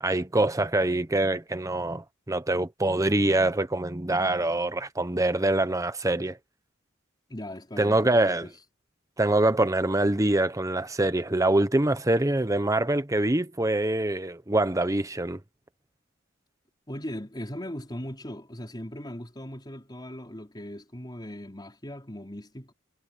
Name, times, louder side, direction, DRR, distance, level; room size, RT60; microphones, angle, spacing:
voice 1, 0.0-6.4 7.8-8.5 9.2-15.4, right 2 dB, 15° right, 1.0 m, -24 dB
voice 2, 7.3-8.6 16.9-22.7, equal, 20° left, 4.9 m, -39 dB
head